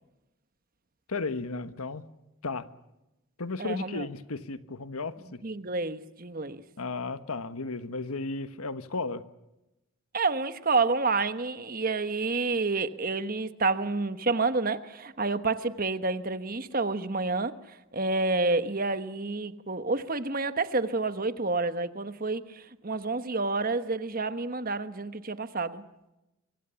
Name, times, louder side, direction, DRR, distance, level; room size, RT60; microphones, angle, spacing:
voice 1, 1.1-2.0 2.4-2.7 3.4-5.4 6.8-9.2, left 3 dB, 80° left, 1.3 m, -34 dB
voice 2, 3.6-4.1 5.4-6.6 10.1-17.5 17.9-25.8, right 3 dB, 40° right, 1.2 m, -29 dB
25.0 x 24.5 x 7.0 m
head